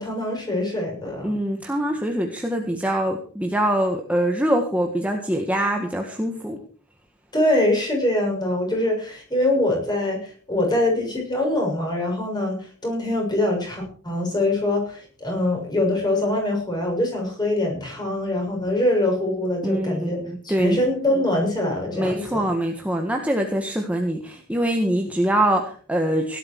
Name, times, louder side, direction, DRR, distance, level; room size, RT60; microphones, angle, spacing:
voice 1, 0.0-1.3 7.3-12.6 12.8-20.2 20.4-22.4, left 1 dB, 20° left, 1 dB, 6.6 m, -23 dB
voice 2, 1.2-6.6 19.6-20.8 21.9-26.4, right 1 dB, 5° right, 2 dB, 1.7 m, -24 dB
17.5 x 12.0 x 4.7 m, 0.42 s
head